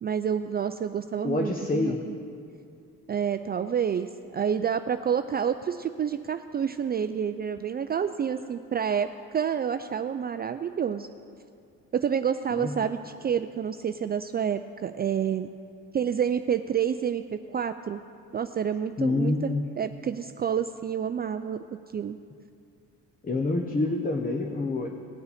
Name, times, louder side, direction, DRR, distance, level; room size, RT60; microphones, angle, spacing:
voice 1, 0.0-2.1 3.1-11.1 11.9-15.5 15.9-18.0 18.3-21.6 21.9-22.2, right 8 dB, 35° right, 9 dB, 0.4 m, -29 dB
voice 2, 1.2-2.1 12.6-12.7 19.0-19.6 23.2-24.9, left 2 dB, 30° left, 3 dB, 0.9 m, -27 dB
18.5 x 6.8 x 4.2 m, 2.4 s
cardioid pair, 90°, 30 cm